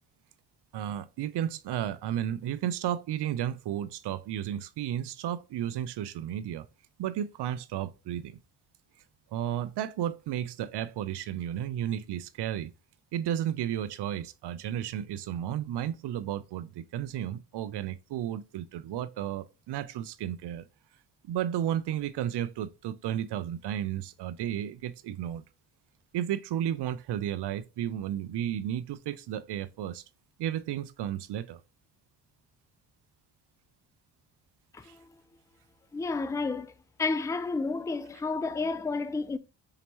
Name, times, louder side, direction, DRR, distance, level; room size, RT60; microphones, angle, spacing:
voice 1, 0.7-6.7 7.0-8.4 9.3-12.7 13.1-20.7 21.2-25.4 26.1-30.0 30.4-31.6 34.8-34.9, right 11 dB, 75° right, 0.6 m, -33 dB
voice 2, 34.7-35.1 35.9-36.7 37.0-39.4, left 3 dB, 10° left, 0.3 m, -31 dB
4.4 x 2.9 x 3.0 m
cardioid pair, 70°, 41 cm